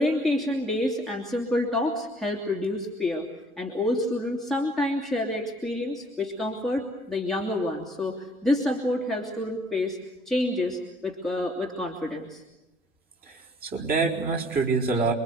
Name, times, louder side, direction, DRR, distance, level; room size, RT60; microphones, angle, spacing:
voice 1, 0.0-3.3 3.6-10.0 10.3-12.4, left 1 dB, ahead, -1 dB, 2.7 m, -28 dB
voice 2, 13.2-15.1, right 4 dB, 20° right, 0 dB, 4.6 m, -26 dB
28.0 x 23.0 x 8.3 m, 0.98 s
hypercardioid pair, 110°, 43 cm